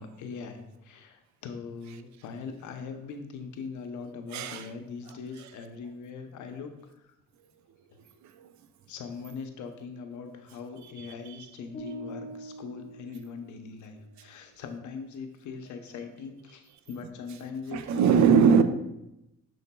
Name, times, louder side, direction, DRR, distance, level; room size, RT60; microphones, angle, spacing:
voice 1, 0.0-6.7 8.9-18.5, left 5 dB, 75° left, 6 dB, 0.7 m, -41 dB
voice 2, 4.3-4.7 5.1-5.5 8.3-8.5 10.8-11.5 17.0-17.4 17.7-18.6, right 6 dB, 65° right, 10 dB, 0.5 m, -24 dB
sound 1, 11.7-13.9, right 1 dB, 25° left, 1.3 m, -43 dB
6.2 x 3.8 x 2.2 m, 0.90 s
cardioid pair, 90°, 30 cm